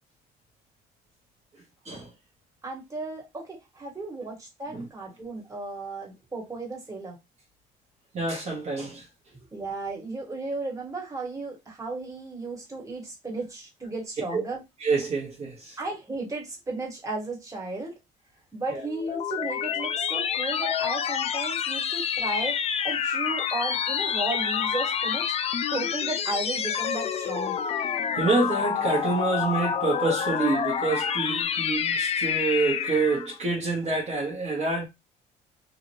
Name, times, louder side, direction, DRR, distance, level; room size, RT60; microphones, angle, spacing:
voice 1, 1.5-2.1 4.7-4.9 8.1-9.1 14.3-14.4 14.8-15.8 18.7-18.8 28.2-34.9, right 3 dB, 40° right, 1.0 m, -27 dB
voice 2, 2.6-7.2 9.5-14.6 15.8-17.9 18.5-22.6 22.8-25.3 25.7-27.6, right 2 dB, 20° right, 1.5 m, -34 dB
sound 1, 18.7-33.3, left 8 dB, 40° left, 0.4 m, -28 dB
3.0 x 2.4 x 2.6 m
cardioid pair, 110°, 17 cm